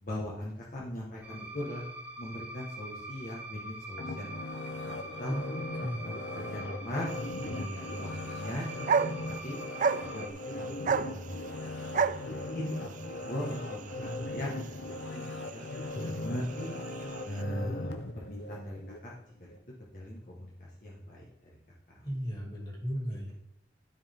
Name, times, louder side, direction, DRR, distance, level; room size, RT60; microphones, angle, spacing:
voice 1, 0.0-1.9 2.2-4.3 4.8-4.9 5.2-5.3 5.8-7.1 7.4-8.7 9.4-9.6 10.0-15.7 16.2-16.8 17.2-19.5 19.9-21.6 21.9-22.0, left 1 dB, 50° left, -4 dB, 1.5 m, -40 dB
sound 1, 1.2-10.3, right 1 dB, 10° right, 1.1 m, -44 dB
sound 2, 4.0-19.0 19.5-19.6, left 2 dB, 75° left, 0.7 m, -39 dB
sound 3, 7.1-17.4, right 6 dB, 45° right, 0.3 m, -35 dB
voice 2, 22.0-23.3, equal, 25° left, -4 dB, 2.7 m, -35 dB
12.5 x 4.6 x 3.6 m, 0.78 s
head